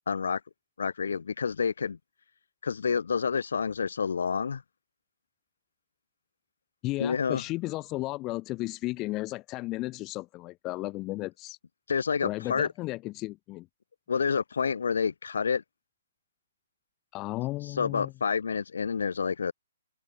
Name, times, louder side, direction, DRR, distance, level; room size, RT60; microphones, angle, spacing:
voice 1, 0.1-0.4 0.8-2.0 2.6-4.6 7.0-7.4 11.9-12.7 14.1-15.6 17.8-19.5, left 6 dB, 65° left, 1.4 m, -28 dB
voice 2, 6.8-11.6 12.2-13.7 17.1-18.1, left 19 dB, 25° left, 0.6 m, -34 dB
figure-of-eight pair, 125°, 0 cm